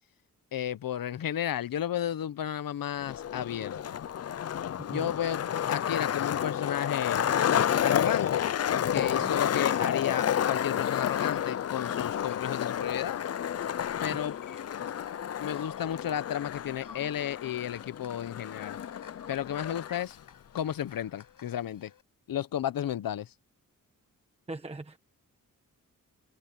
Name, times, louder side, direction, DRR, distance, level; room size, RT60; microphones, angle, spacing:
voice 1, 0.5-4.0 4.9-5.4 5.7-7.3 7.8-8.5 8.9-13.2 14.0-14.4 15.4-18.8 19.3-20.2 20.5-21.9 22.3-23.3, left 10 dB, 90° left, 0.9 m, -33 dB
Skateboard, 3.0-20.0, left 9 dB, 50° left, 0.5 m, -30 dB
voice 2, 9.0-9.3 24.5-25.0, right 2 dB, 20° right, 1.2 m, -40 dB
sound 1, 11.1-16.2 16.5-22.0, left 6 dB, 75° left, 7.2 m, -53 dB
wide cardioid pair, 165°, 33 cm